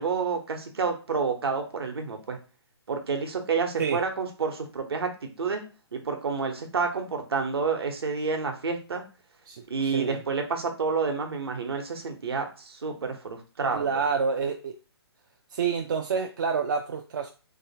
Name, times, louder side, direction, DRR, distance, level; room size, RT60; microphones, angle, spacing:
voice 1, 0.0-2.4 2.9-5.1 5.4-5.6 5.9-9.0 9.7-14.0, right 5 dB, 65° right, 4 dB, 0.9 m, -29 dB
voice 2, 9.5-10.2 13.7-14.8 15.5-17.3, right 5 dB, 45° right, 4 dB, 0.4 m, -28 dB
3.1 x 2.8 x 2.8 m, 0.34 s
figure-of-eight pair, 135°, 14 cm